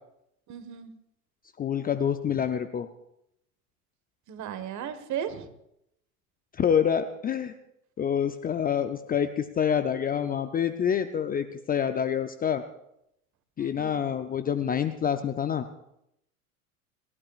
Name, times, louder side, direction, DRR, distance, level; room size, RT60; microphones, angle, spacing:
voice 1, 0.5-0.9 4.3-5.5 13.6-14.0, right 9 dB, 40° right, 11 dB, 1.7 m, -36 dB
voice 2, 1.6-2.9 6.5-7.5 8.0-12.6 13.6-15.6, left 8 dB, 20° left, 9 dB, 0.6 m, -27 dB
30.0 x 12.0 x 2.5 m, 0.79 s
hypercardioid pair, 90°, 45 cm